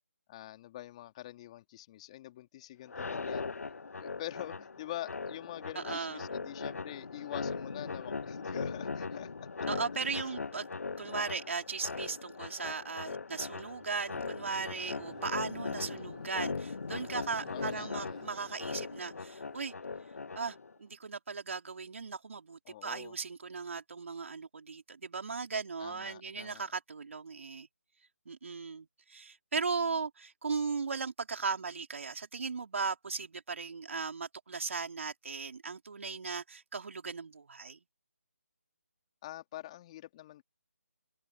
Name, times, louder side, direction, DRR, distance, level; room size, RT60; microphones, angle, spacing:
voice 1, 0.3-3.5 3.9-9.7 10.0-10.3 15.7-16.1 17.5-18.3 22.6-23.2 25.8-26.7 39.2-40.4, left 14 dB, 25° left, 3.1 m, -45 dB
sound 1, 2.9-20.7, left 4 dB, 70° left, 0.5 m, -40 dB
voice 2, 5.8-6.3 9.7-10.7 11.0-19.7 20.4-27.7 28.3-37.8, right 5 dB, 55° right, 3.7 m, -37 dB
Laughter, 13.3-19.6, right 11 dB, 30° right, 4.7 m, -57 dB
open air
figure-of-eight pair, 155°, 8 cm